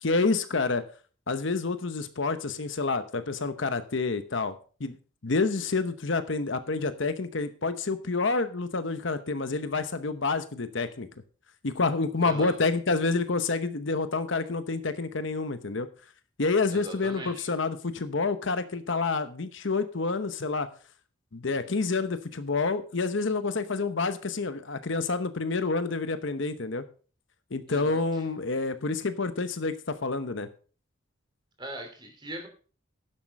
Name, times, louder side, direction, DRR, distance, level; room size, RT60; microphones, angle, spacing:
voice 1, 0.0-0.9 1.3-5.0 5.2-11.1 11.6-15.9 16.4-20.7 21.3-26.8 27.5-29.7 30.0-30.5, left 3 dB, 60° left, 11 dB, 0.9 m, -28 dB
voice 2, 12.2-12.5 16.7-17.5 27.7-28.3 31.6-32.5, equal, 20° right, 3 dB, 2.8 m, -40 dB
11.0 x 7.5 x 5.3 m, 0.39 s
head